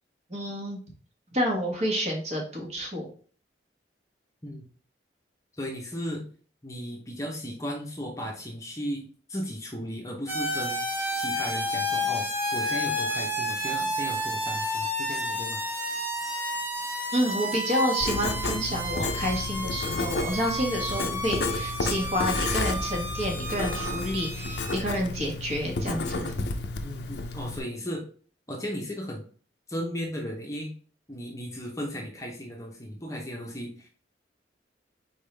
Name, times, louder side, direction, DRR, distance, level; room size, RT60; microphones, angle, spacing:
voice 1, 0.3-0.8 1.3-3.1 17.1-26.3, equal, 35° right, 0 dB, 1.3 m, -29 dB
voice 2, 5.6-6.2 6.6-10.8 11.1-15.6 26.8-28.0 28.5-29.2 29.7-30.7 31.1-33.9, equal, 15° left, 0 dB, 0.8 m, -35 dB
sound 1, 10.3-24.8, equal, 10° right, 0.9 m, -31 dB
Writing, 18.0-27.6, left 3 dB, 65° left, 0.5 m, -32 dB
4.5 x 3.6 x 3.2 m, 0.42 s
head